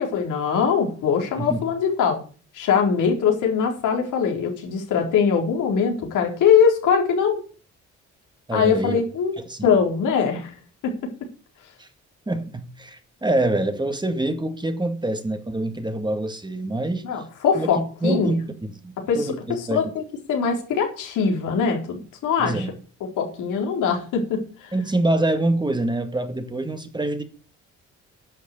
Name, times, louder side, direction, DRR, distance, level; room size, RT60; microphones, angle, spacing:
voice 1, 0.0-2.2 2.5-7.4 8.5-9.4 9.6-10.5 10.8-11.1 17.0-18.3 19.1-20.0 20.3-22.7 23.2-24.7, left 6 dB, 85° left, 4.2 m, -22 dB
voice 2, 8.5-9.0 9.5-9.7 11.8-11.9 12.3-17.1 17.5-19.9 22.4-22.7 24.7-27.2, right 1 dB, 15° right, 2.0 m, -25 dB
11.0 x 6.5 x 8.1 m
cardioid pair, 90°, 30 cm